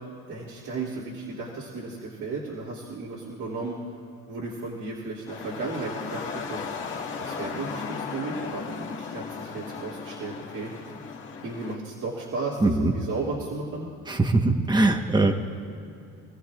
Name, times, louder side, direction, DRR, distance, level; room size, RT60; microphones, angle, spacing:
voice 1, 0.3-3.8 4.3-6.7 7.2-10.7 11.4-13.9, right 3 dB, 60° right, -6 dB, 2.9 m, -34 dB
sound 1, 5.3-11.8, left 5 dB, 35° left, 1.9 m, -36 dB
voice 2, 12.6-12.9 14.1-15.3, right 2 dB, 15° right, 4 dB, 1.2 m, -21 dB
26.0 x 15.0 x 2.5 m, 2.7 s
supercardioid pair, 95°, 34 cm